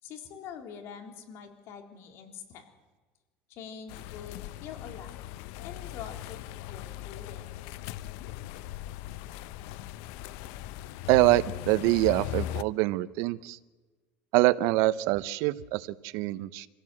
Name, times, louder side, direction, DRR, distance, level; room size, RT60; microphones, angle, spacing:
voice 1, 0.0-2.6 3.5-5.3 5.6-7.4, left 7 dB, 60° left, 5 dB, 3.7 m, -45 dB
sound 1, 3.9-12.6, left 14 dB, 75° left, 0.7 m, -39 dB
voice 2, 11.1-13.6 14.3-16.7, right 18 dB, 70° right, 16 dB, 0.8 m, -25 dB
26.0 x 16.5 x 7.8 m, 1.3 s
cardioid pair, 130°, 5 cm